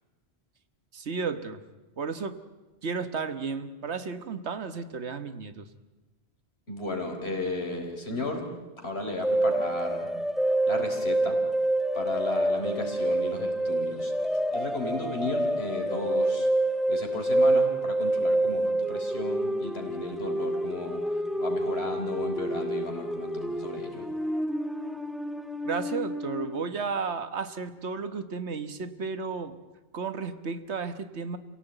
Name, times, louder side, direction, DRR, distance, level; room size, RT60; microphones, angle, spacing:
voice 1, 0.9-1.6 2.0-2.4 2.8-5.7 25.6-29.6 29.9-31.4, right 5 dB, 85° right, 11 dB, 1.6 m, -33 dB
voice 2, 6.7-8.5 8.8-10.1 10.7-11.4 11.9-14.1 14.5-16.5 16.9-21.0 21.4-24.0, left 2 dB, 70° left, 3 dB, 4.3 m, -34 dB
sound 1, 9.2-26.6, right 1 dB, ahead, 0.8 m, -28 dB
28.0 x 17.0 x 9.1 m, 1.2 s
omnidirectional pair, 1.1 m